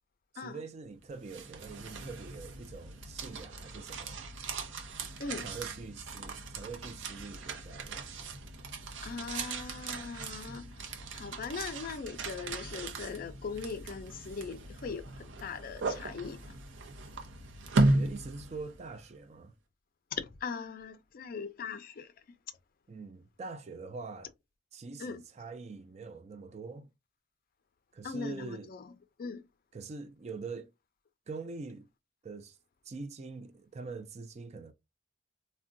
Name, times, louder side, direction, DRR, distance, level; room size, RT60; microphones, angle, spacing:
voice 1, 0.3-4.2 5.4-8.1 17.9-19.5 22.9-24.3 24.7-26.9 27.9-28.7 29.7-30.7 31.3-31.9 32.2-32.6 32.9-34.7, right 4 dB, 35° right, 0.4 m, -44 dB
sound 1, 1.0-19.0, right 2 dB, 90° right, 0.6 m, -36 dB
voice 2, 9.0-10.7 11.1-16.6 20.1-22.4 25.0-25.2 28.0-28.9 29.2-29.5, left 5 dB, 50° left, 0.4 m, -40 dB
3.5 x 2.2 x 2.5 m
head